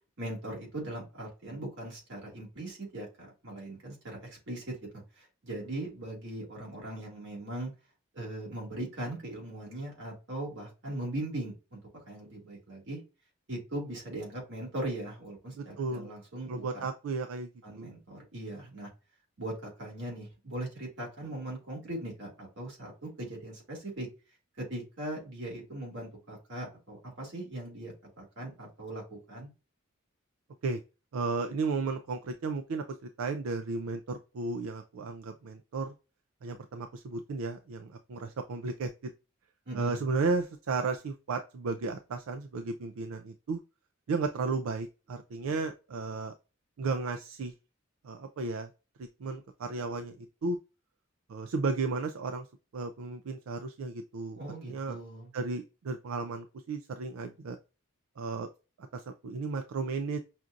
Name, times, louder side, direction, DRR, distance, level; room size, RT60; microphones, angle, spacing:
voice 1, 0.2-7.7 8.1-11.8 12.1-13.0 13.5-16.8 17.6-18.9 19.4-24.1 24.6-29.5 39.7-40.0 54.4-55.3, right 1 dB, 60° right, -2 dB, 2.2 m, -39 dB
voice 2, 15.6-16.1 16.5-17.5 17.8-17.9 30.6-30.8 31.1-32.8 33.2-35.9 36.4-39.1 39.7-43.6 44.1-46.3 46.8-47.5 48.0-48.7 49.2-50.6 51.3-52.5 52.7-55.0 55.3-57.6 58.2-58.5 58.9-60.2, right 4 dB, 85° right, 6 dB, 0.4 m, -34 dB
5.8 x 2.5 x 2.4 m, 0.31 s
head